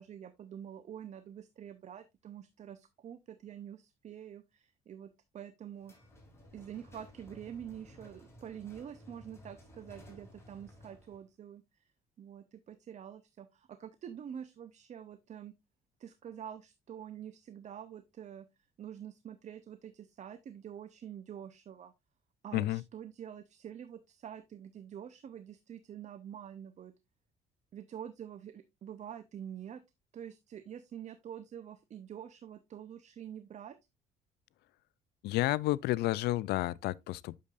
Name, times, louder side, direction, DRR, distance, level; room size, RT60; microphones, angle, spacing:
voice 1, 0.0-5.9 6.5-11.8 12.2-15.5 16.0-18.5 18.8-21.9 22.4-26.9 27.7-29.8 30.1-33.8, right 9 dB, 45° right, 0.7 m, -46 dB
sound 1, 5.8-11.2, left 1 dB, 15° left, 3.1 m, -55 dB
voice 2, 22.5-22.8 35.2-37.4, left 17 dB, 75° left, 0.4 m, -31 dB
8.4 x 6.6 x 2.4 m
cardioid pair, 110°, 17 cm